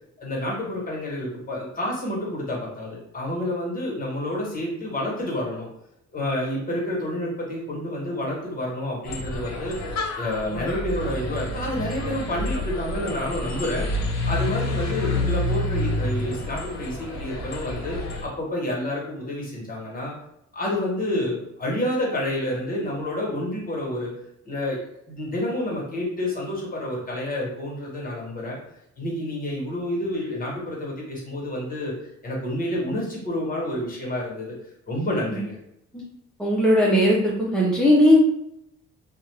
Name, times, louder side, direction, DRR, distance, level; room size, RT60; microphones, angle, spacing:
voice 1, 0.2-5.7 6.1-13.9 14.2-18.0 18.2-20.1 20.5-24.1 24.4-24.8 25.1-28.6 29.0-31.9 32.2-34.5 34.9-35.6, left 1 dB, 30° left, -3 dB, 1.2 m, -29 dB
sound 1, 9.1-18.3, left 2 dB, 65° left, 0.7 m, -28 dB
voice 2, 36.4-38.2, left 1 dB, ahead, -5 dB, 0.5 m, -18 dB
2.5 x 2.2 x 3.2 m, 0.81 s
cardioid pair, 90°, 30 cm